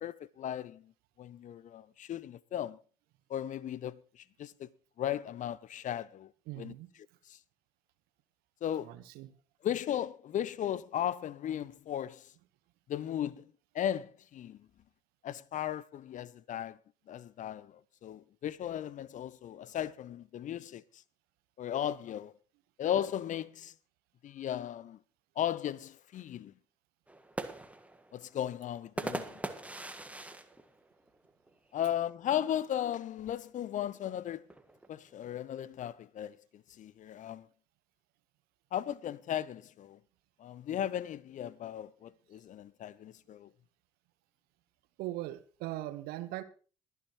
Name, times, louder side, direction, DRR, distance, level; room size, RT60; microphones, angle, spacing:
voice 1, 0.0-0.8 1.2-2.8 3.3-4.0 4.4-4.7 5.0-6.3 6.6-6.7 8.6-8.9 9.6-12.2 12.9-13.4 13.7-14.6 15.2-16.8 17.1-17.7 18.0-20.8 21.6-22.3 22.8-23.7 24.2-25.0 25.4-26.5 28.1-29.2 31.7-34.4 34.9-36.4 36.8-37.5 38.7-40.0 40.4-43.5, left 10 dB, 45° left, 0.7 m, -36 dB
voice 2, 6.5-6.9 8.8-9.3 45.0-46.4, right 16 dB, 65° right, 1.1 m, -40 dB
sound 1, 27.1-31.7 32.1-32.2 32.5-33.0 33.8-35.3, right 1 dB, 10° right, 1.6 m, -42 dB
23.0 x 9.2 x 3.0 m
figure-of-eight pair, 45°, 17 cm